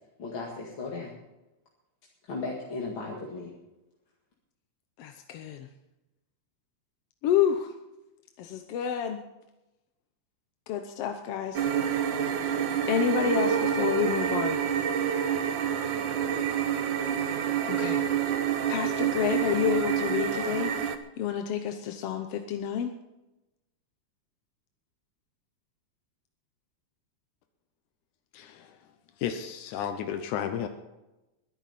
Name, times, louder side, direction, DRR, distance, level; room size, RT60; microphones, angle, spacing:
voice 1, 0.2-1.1 2.3-3.5, left 3 dB, 45° left, -3 dB, 2.6 m, -36 dB
voice 2, 5.0-5.7 7.2-7.7 8.4-9.2 10.7-11.7 12.9-14.6 17.7-18.0 18.7-20.7 21.2-22.9, left 9 dB, 65° left, 5 dB, 1.6 m, -29 dB
sound 1, 11.5-21.0, right 8 dB, 80° right, 1.0 m, -27 dB
voice 3, 28.3-28.8 29.2-30.7, left 9 dB, 90° left, 7 dB, 2.4 m, -33 dB
21.5 x 11.5 x 4.2 m, 1.0 s
omnidirectional pair, 3.4 m